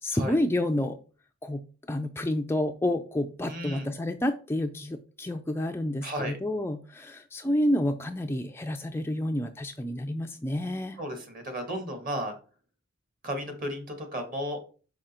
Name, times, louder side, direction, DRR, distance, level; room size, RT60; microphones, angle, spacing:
voice 1, 0.0-1.0 1.4-11.0, left 1 dB, 10° left, 5 dB, 0.3 m, -29 dB
voice 2, 3.5-3.9 6.0-6.4 11.0-12.3 13.2-14.6, equal, 40° right, 5 dB, 1.7 m, -34 dB
6.0 x 5.0 x 4.3 m, 0.38 s
head